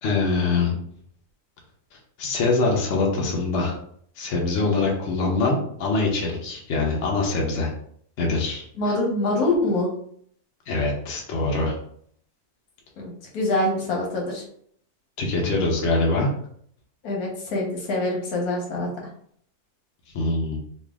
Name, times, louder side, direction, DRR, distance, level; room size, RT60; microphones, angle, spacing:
voice 1, 0.0-0.7 2.2-3.8 4.2-7.7 8.2-8.6 10.7-11.7 15.2-16.3 20.1-20.6, left 3 dB, 55° left, -2 dB, 1.0 m, -23 dB
voice 2, 8.8-9.9 13.0-14.4 17.0-18.9, left 2 dB, 75° left, -1 dB, 1.4 m, -25 dB
3.3 x 2.5 x 3.5 m, 0.63 s
omnidirectional pair, 1.6 m